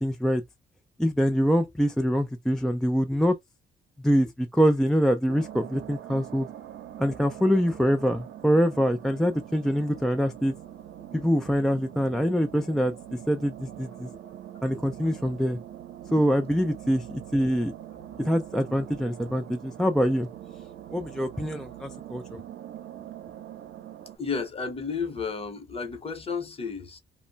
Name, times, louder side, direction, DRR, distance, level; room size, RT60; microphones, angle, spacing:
voice 1, 0.0-0.4 1.0-3.4 4.0-6.5 7.0-10.5 11.1-14.1 14.6-15.6 16.1-17.7 18.2-20.3 20.9-22.4, equal, ahead, 0.3 m, -24 dB
sound 1, 5.3-24.2, right 11 dB, 70° right, 0.7 m, -43 dB
voice 2, 24.2-27.0, left 5 dB, 30° left, 0.9 m, -32 dB
2.1 x 2.0 x 3.8 m
cardioid pair, 90°, 20 cm